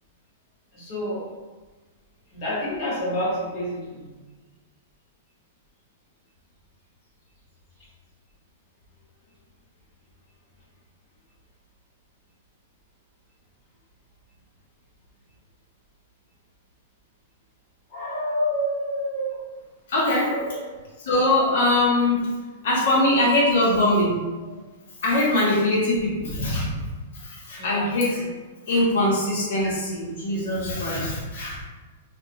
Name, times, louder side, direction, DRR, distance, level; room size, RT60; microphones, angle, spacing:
voice 1, 0.7-1.2 2.3-4.1 17.9-19.6 20.1-20.5 22.9-23.2 26.4-26.5 27.5-27.9 28.2-28.3, equal, 30° left, -8 dB, 1.0 m, -29 dB
voice 2, 19.9-20.3 21.0-22.2 22.6-24.2 25.0-26.8 27.4-28.2 28.7-31.6, left 1 dB, 65° left, -5 dB, 0.8 m, -22 dB
2.3 x 2.2 x 2.7 m, 1.3 s
supercardioid pair, 170°, 0 cm